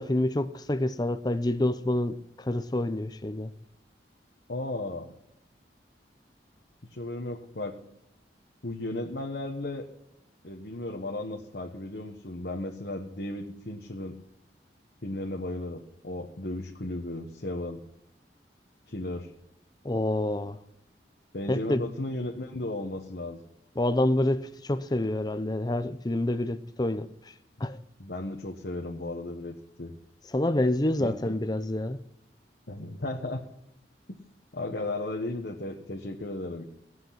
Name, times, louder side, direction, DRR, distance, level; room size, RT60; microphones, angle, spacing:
voice 1, 0.0-3.5 19.8-20.6 21.5-21.9 23.8-27.1 27.6-27.8 30.3-32.0, left 1 dB, 25° left, 0.6 m, -27 dB
voice 2, 4.5-5.1 6.9-7.8 8.6-9.9 10.4-14.2 15.0-17.8 18.9-19.3 21.3-23.4 28.0-30.0 31.0-31.3 32.7-33.4 34.5-36.6, left 2 dB, 65° left, 1.3 m, -35 dB
17.5 x 8.0 x 5.9 m
head